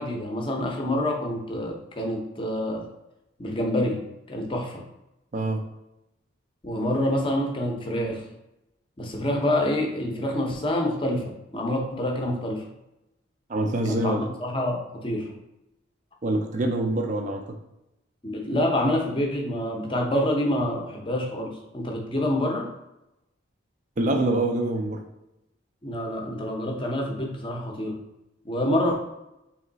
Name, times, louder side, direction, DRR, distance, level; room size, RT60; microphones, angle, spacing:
voice 1, 0.0-2.9 3.4-4.8 6.6-8.3 9.0-12.7 13.8-15.3 18.2-22.7 25.8-28.0 28.4-28.9, left 1 dB, 25° left, 1 dB, 0.6 m, -27 dB
voice 2, 13.5-14.3 16.2-17.4 24.0-25.0, right 2 dB, 40° right, 3 dB, 0.4 m, -25 dB
3.5 x 3.0 x 3.9 m, 0.90 s
head